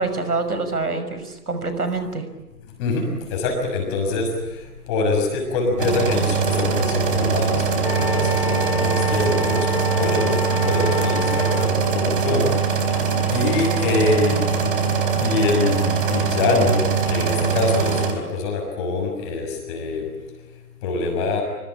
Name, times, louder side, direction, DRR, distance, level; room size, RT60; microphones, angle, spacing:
voice 1, 0.0-2.2, right 3 dB, 65° right, 9 dB, 6.1 m, -25 dB
voice 2, 2.8-4.3 4.9-9.7 10.0-12.4 13.3-14.7 15.2-16.8 17.1-20.0 20.8-21.4, left 3 dB, 15° left, 2 dB, 6.3 m, -24 dB
sound 1, 5.8-18.1, right 6 dB, 30° right, 4.3 m, -22 dB
Wind instrument woodwind instrument, 7.8-11.7, left 3 dB, 85° left, 1.9 m, -28 dB
25.0 x 24.5 x 8.8 m, 1.1 s
figure-of-eight pair, 150°, 48 cm